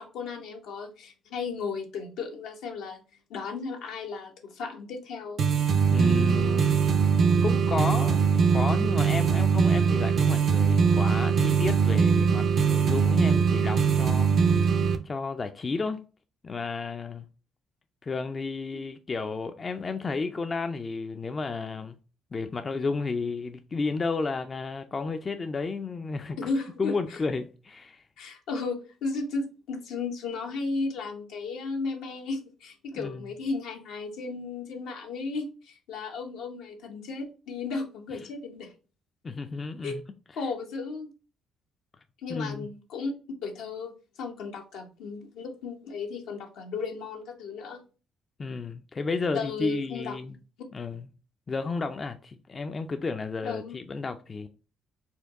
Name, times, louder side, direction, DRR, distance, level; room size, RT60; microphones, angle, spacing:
voice 1, 0.0-3.0 3.3-5.4 26.4-27.2 28.2-38.7 39.8-40.0 40.4-41.1 42.2-43.1 43.4-43.9 44.2-47.8 49.3-50.2 53.4-53.7, left 4 dB, 85° left, 0.8 m, -34 dB
sound 1, 5.4-15.0, right 6 dB, 60° right, 0.5 m, -22 dB
voice 2, 5.9-6.7 7.4-14.7 15.0-16.0 16.4-17.3 18.0-22.0 22.3-26.5 26.8-28.0 32.9-33.3 38.2-38.3 39.2-40.0 42.3-42.7 48.4-50.4 50.7-51.1 51.5-54.5, left 4 dB, 40° left, 0.4 m, -32 dB
4.3 x 2.2 x 3.6 m
supercardioid pair, 65°, 0 cm